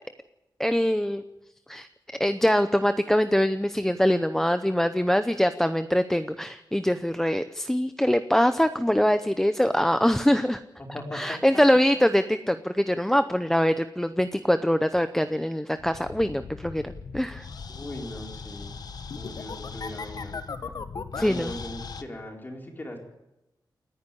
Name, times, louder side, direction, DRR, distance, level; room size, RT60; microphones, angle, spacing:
voice 1, 0.6-1.2 1.7-1.9 2.2-10.6 11.1-17.4 21.2-21.5, equal, 5° left, 10 dB, 0.7 m, -23 dB
voice 2, 10.8-11.6 17.7-18.8 19.2-20.4 21.1-23.0, left 1 dB, 25° left, 1 dB, 4.5 m, -39 dB
sound 1, 15.8-22.0, left 5 dB, 55° left, 1.3 m, -38 dB
29.0 x 10.0 x 10.0 m, 0.94 s
wide cardioid pair, 160°, 8 cm